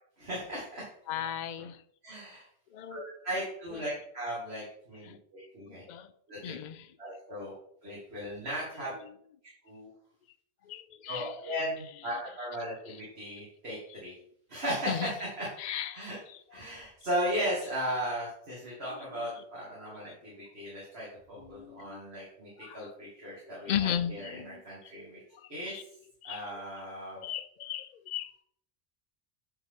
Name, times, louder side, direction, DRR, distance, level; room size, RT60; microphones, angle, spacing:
voice 1, 0.2-0.8 2.0-2.5 2.9-5.8 6.3-6.5 7.0-7.5 7.8-8.9 9.6-9.9 11.1-14.1 14.5-15.5 15.9-16.2 16.5-25.2 25.5-25.8 26.2-27.2, equal, 55° right, -7 dB, 2.4 m, -36 dB
voice 2, 1.1-1.8 2.7-3.0 3.7-3.9 5.0-5.2 5.7-6.1 6.4-6.9 7.4-7.5 8.8-9.2 10.7-12.5 12.9-13.0 13.9-14.0 14.9-15.2 15.6-16.6 18.9-19.3 19.9-20.3 21.4-22.0 22.6-22.9 23.7-24.6 25.7-25.8 26.2-26.4 27.2-28.3, left 10 dB, 60° left, 11 dB, 0.5 m, -37 dB
8.9 x 4.0 x 3.6 m, 0.66 s
omnidirectional pair, 1.2 m